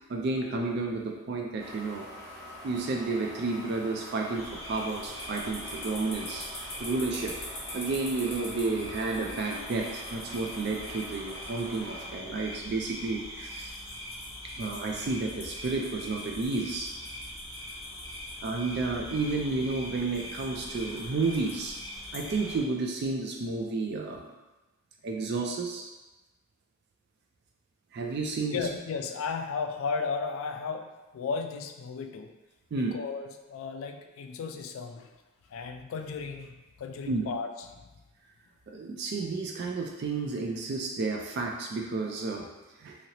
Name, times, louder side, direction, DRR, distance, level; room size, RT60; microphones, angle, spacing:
voice 1, 0.1-2.1 2.6-6.5 6.8-7.4 7.7-13.7 14.6-16.9 18.4-21.8 22.1-24.3 25.0-25.9 27.9-28.6 32.7-32.9 37.1-37.3 38.7-42.5 42.8-43.0, right 3 dB, 50° right, 1 dB, 0.3 m, -31 dB
sound 1, 1.6-12.1, equal, 15° right, 1.4 m, -46 dB
sound 2, 4.3-22.6, left 1 dB, 30° left, 1.0 m, -41 dB
voice 2, 28.5-32.3 32.7-35.1 35.5-37.9, left 5 dB, 75° left, 6 dB, 0.3 m, -35 dB
2.8 x 2.8 x 2.8 m, 1.1 s
head